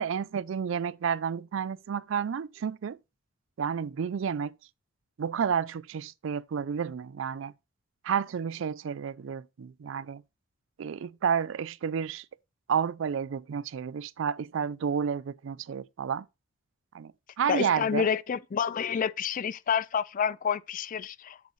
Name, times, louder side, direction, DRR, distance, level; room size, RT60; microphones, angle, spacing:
voice 1, 0.0-3.0 3.6-4.5 5.2-7.5 8.0-10.2 10.8-12.2 12.7-16.3 16.9-17.1 17.4-18.1, right 7 dB, 65° right, 0.4 m, -30 dB
voice 2, 17.5-21.5, left 7 dB, 40° left, 0.4 m, -29 dB
7.8 x 7.3 x 3.1 m
head